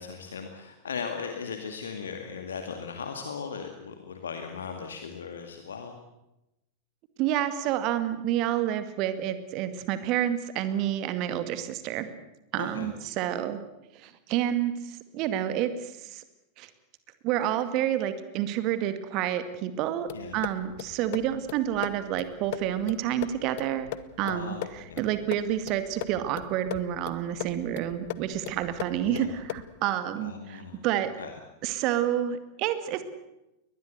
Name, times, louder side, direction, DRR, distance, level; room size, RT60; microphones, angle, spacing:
voice 1, 0.0-5.9 12.6-12.9 20.1-20.4 24.2-25.0 29.0-29.3 30.2-30.8 31.2-31.3, left 6 dB, 70° left, 5 dB, 2.2 m, -37 dB
voice 2, 7.2-12.1 12.5-13.6 13.9-16.2 16.6-16.7 17.2-23.9 24.2-31.1 31.6-33.0, right 11 dB, 40° right, 11 dB, 2.2 m, -29 dB
sound 1, 20.1-29.8, left 15 dB, 50° left, 1.0 m, -40 dB
22.5 x 20.0 x 8.1 m, 0.93 s
figure-of-eight pair, 90°, 0 cm